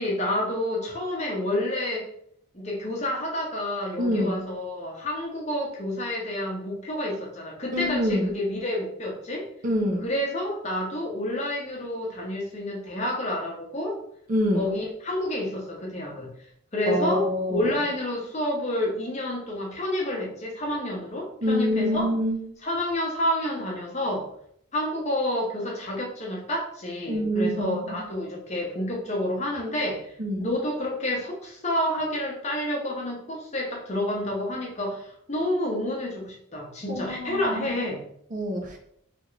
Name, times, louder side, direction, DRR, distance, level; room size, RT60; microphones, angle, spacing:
voice 1, 0.0-2.0 2.5-9.5 10.0-14.0 14.5-16.3 16.7-22.1 22.6-24.3 24.7-30.1 30.4-38.1, left 1 dB, 30° left, -2 dB, 0.7 m, -29 dB
voice 2, 4.0-4.4 7.7-8.3 9.6-10.1 14.3-14.7 16.9-17.7 21.4-22.5 27.1-27.8 30.2-30.5 36.9-37.9 38.3-38.8, equal, 40° right, 2 dB, 0.4 m, -26 dB
3.4 x 2.5 x 3.1 m, 0.69 s
head